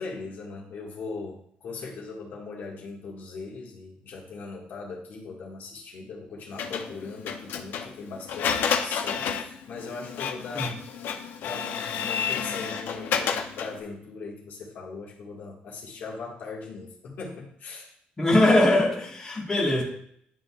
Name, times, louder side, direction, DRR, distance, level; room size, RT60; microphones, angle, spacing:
voice 1, 0.0-10.8 11.4-17.9, left 4 dB, 60° left, -3 dB, 1.8 m, -39 dB
Printer, 6.6-13.8, left 7 dB, 75° left, 0.7 m, -30 dB
voice 2, 18.2-19.8, left 1 dB, 20° left, -4 dB, 1.6 m, -21 dB
10.5 x 3.9 x 2.4 m, 0.68 s
cardioid pair, 130°, 3 cm